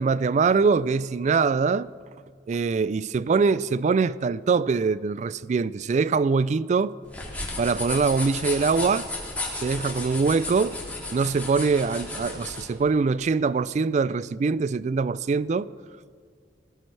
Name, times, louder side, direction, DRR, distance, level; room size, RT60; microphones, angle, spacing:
voice 1, 0.0-1.9 2.5-6.9 7.6-9.1 9.6-10.8 11.1-15.7, right 4 dB, 40° right, 0.3 m, -23 dB
sound 1, 7.1-12.7, left 2 dB, 10° left, 2.7 m, -34 dB
19.0 x 15.0 x 3.3 m
head